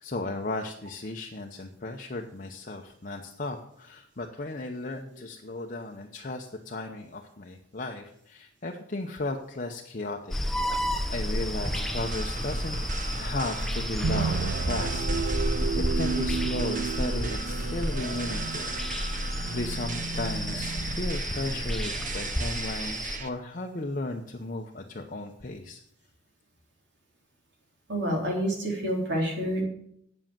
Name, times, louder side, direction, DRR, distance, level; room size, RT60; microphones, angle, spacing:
voice 1, 0.0-10.4 10.7-15.0 15.4-18.7 19.5-25.8, left 2 dB, 40° left, 2 dB, 0.8 m, -35 dB
sound 1, 10.3-23.2, equal, ahead, 0.7 m, -31 dB
sound 2, 11.6-23.3, right 4 dB, 40° right, 0.9 m, -38 dB
sound 3, 14.0-22.8, right 5 dB, 85° right, 0.4 m, -34 dB
voice 2, 27.9-29.6, equal, 55° right, -1 dB, 3.5 m, -28 dB
8.8 x 7.6 x 7.4 m, 0.71 s
head